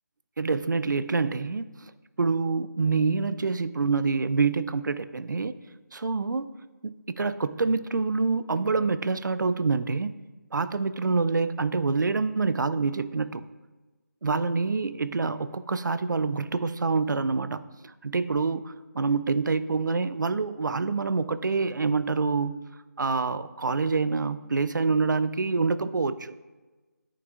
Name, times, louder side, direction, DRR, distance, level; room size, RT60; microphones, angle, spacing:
voice 1, 0.4-1.9 2.2-5.5 5.9-6.5 6.8-10.2 10.5-13.5 14.2-22.6 23.0-26.3, right 4 dB, 85° right, 14 dB, 0.4 m, -26 dB
9.5 x 6.2 x 2.4 m, 1.2 s
figure-of-eight pair, 170°, 10 cm